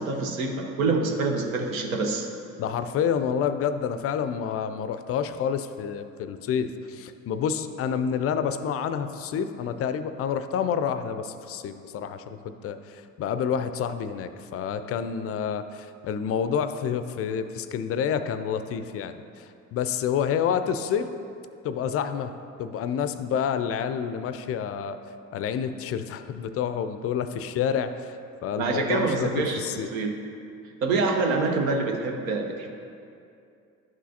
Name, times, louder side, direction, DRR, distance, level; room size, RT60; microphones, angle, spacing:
voice 1, 0.0-2.3 28.6-30.2 30.8-32.7, right 3 dB, 75° right, 3 dB, 0.8 m, -26 dB
voice 2, 2.6-21.1 21.6-22.3 22.6-25.0 25.3-29.9, left 7 dB, 35° left, 10 dB, 0.4 m, -28 dB
11.0 x 6.1 x 2.7 m, 2.5 s
figure-of-eight pair, 50°, 41 cm